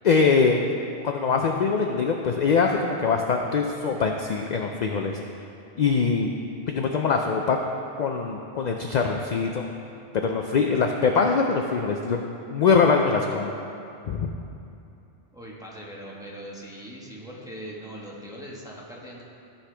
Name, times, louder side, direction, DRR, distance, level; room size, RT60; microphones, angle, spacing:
voice 1, 0.0-0.6 1.0-5.2 5.8-6.3 6.7-7.6 8.0-9.7 10.1-12.2 12.5-13.5 14.1-14.3, left 5 dB, 60° left, 2 dB, 0.4 m, -23 dB
voice 2, 15.3-19.2, equal, 5° right, -5 dB, 1.2 m, -40 dB
14.5 x 5.6 x 3.4 m, 2.7 s
omnidirectional pair, 1.2 m